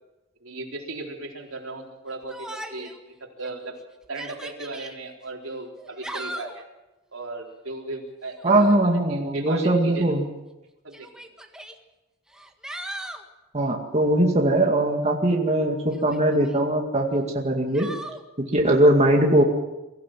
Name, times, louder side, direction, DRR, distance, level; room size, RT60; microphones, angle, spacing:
voice 1, 0.4-2.9 3.2-3.8 4.1-6.7 7.1-10.3 10.8-11.1, right 2 dB, 80° right, 0 dB, 4.2 m, -36 dB
Yell, 2.3-3.0 3.4-3.5 4.0-4.9 5.8-6.6 8.4-8.8 10.0-10.1 10.9-11.7 12.3-13.3 15.9-16.6 17.7-18.2, right 1 dB, 5° right, 1.7 m, -38 dB
voice 2, 8.4-10.2 13.5-17.9 18.5-19.4, right 1 dB, 35° right, 0 dB, 2.2 m, -20 dB
23.5 x 15.5 x 7.6 m, 1.0 s
head